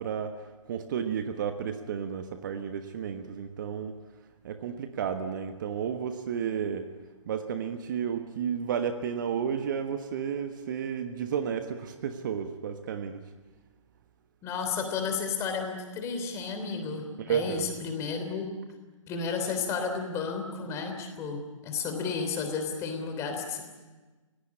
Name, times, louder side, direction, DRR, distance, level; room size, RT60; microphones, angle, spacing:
voice 1, 0.0-4.0 4.4-6.9 7.2-13.2 17.2-17.7, right 7 dB, 35° right, 8 dB, 1.3 m, -32 dB
voice 2, 14.4-18.5 19.1-23.6, left 5 dB, 15° left, 5 dB, 3.4 m, -32 dB
29.0 x 17.0 x 8.6 m, 1.3 s
figure-of-eight pair, 130°, 17 cm